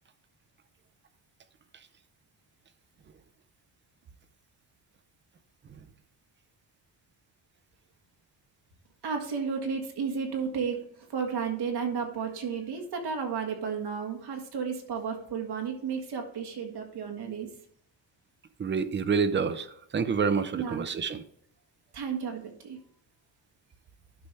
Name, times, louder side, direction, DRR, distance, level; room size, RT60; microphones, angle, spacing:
voice 1, 9.0-10.8 11.1-17.5 20.5-20.9 21.9-22.8, right 6 dB, 55° right, 3 dB, 1.7 m, -33 dB
voice 2, 18.6-19.7 19.9-21.2, right 5 dB, 25° right, 11 dB, 0.5 m, -27 dB
11.5 x 5.6 x 3.3 m, 0.67 s
cardioid pair, 160°, 45 cm